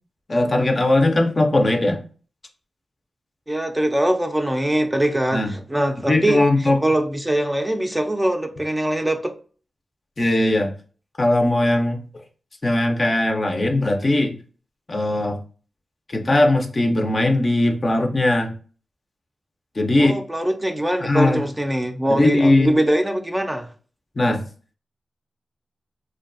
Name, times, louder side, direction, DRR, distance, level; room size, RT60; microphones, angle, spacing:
voice 1, 0.3-2.0 5.3-5.5 6.1-6.8 10.2-10.7 11.2-12.0 12.6-14.3 14.9-15.4 16.1-18.5 19.8-20.2 21.0-21.4 22.1-22.7 24.2-24.4, left 1 dB, 40° left, 0.5 m, -19 dB
voice 2, 3.5-6.4 6.8-9.3 20.0-23.7, right 1 dB, 15° right, 0.4 m, -22 dB
2.5 x 2.2 x 2.5 m
cardioid pair, 50°, 0 cm